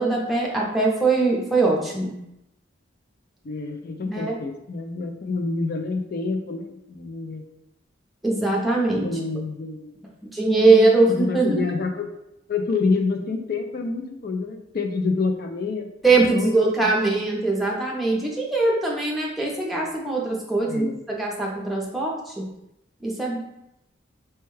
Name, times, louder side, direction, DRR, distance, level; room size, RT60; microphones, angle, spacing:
voice 1, 0.0-2.1 4.1-4.4 8.2-9.2 10.3-11.6 16.0-22.5 23.0-23.4, right 3 dB, ahead, -3 dB, 0.6 m, -21 dB
voice 2, 3.4-7.4 9.0-9.9 11.0-12.1 12.5-15.9 16.3-16.6 17.2-17.3 20.7-21.0, left 4 dB, 50° left, 5 dB, 0.4 m, -27 dB
4.3 x 2.2 x 3.1 m, 0.84 s
head